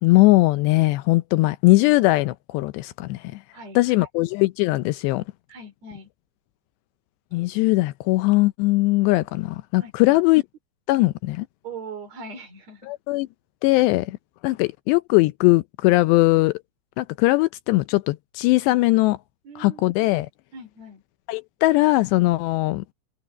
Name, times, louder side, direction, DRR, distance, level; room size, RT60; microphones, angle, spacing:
voice 1, 0.0-3.2 3.8-5.2 7.3-10.4 10.9-11.5 12.9-13.3 13.6-14.2 14.4-16.5 17.0-19.2 19.6-20.3 21.3-22.8, left 20 dB, 85° left, 2.4 m, -20 dB
voice 2, 3.5-4.1 5.5-6.1 9.8-10.2 11.6-12.9 19.4-19.8 20.5-21.0, right 3 dB, 40° right, 4.3 m, -40 dB
open air
omnidirectional pair, 5.5 m